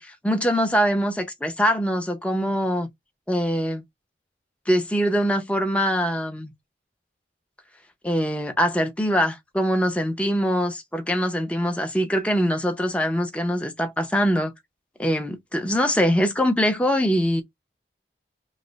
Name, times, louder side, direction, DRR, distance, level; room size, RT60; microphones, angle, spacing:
voice 1, 0.0-2.9 3.3-3.8 4.7-6.5 8.0-14.5 15.0-17.4, equal, 5° left, 0.6 m, -23 dB
3.2 x 2.1 x 3.9 m
head